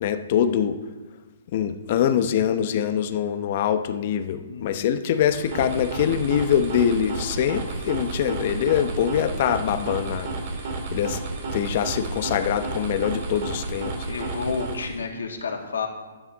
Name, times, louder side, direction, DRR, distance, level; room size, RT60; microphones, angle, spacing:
voice 1, 0.0-0.8 1.5-10.3 10.9-11.2 11.5-13.9, left 9 dB, 50° left, 9 dB, 0.8 m, -24 dB
voice 2, 4.5-4.9 14.1-15.9, left 5 dB, 85° left, 2 dB, 2.0 m, -30 dB
sound 1, 5.1-15.1, right 3 dB, 50° right, 2.2 m, -32 dB
12.5 x 9.8 x 3.6 m, 1.3 s
hypercardioid pair, 140°, 0 cm